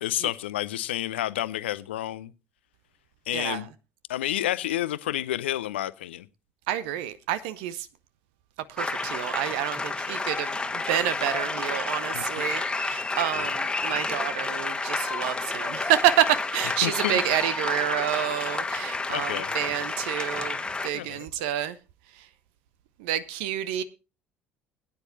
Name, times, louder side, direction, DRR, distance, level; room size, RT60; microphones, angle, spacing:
voice 1, 0.0-2.3 3.3-3.7 4.1-6.3 12.1-12.3 13.3-13.5 16.8-17.2 19.1-19.5 20.9-21.5, left 13 dB, 70° left, 0.6 m, -30 dB
voice 2, 3.3-3.6 6.7-7.9 8.7-21.8 23.0-23.8, right 11 dB, 60° right, 0.7 m, -28 dB
sound 1, 8.8-20.9, left 3 dB, 15° left, 1.4 m, -30 dB
21.0 x 9.8 x 2.7 m
figure-of-eight pair, 60°, 6 cm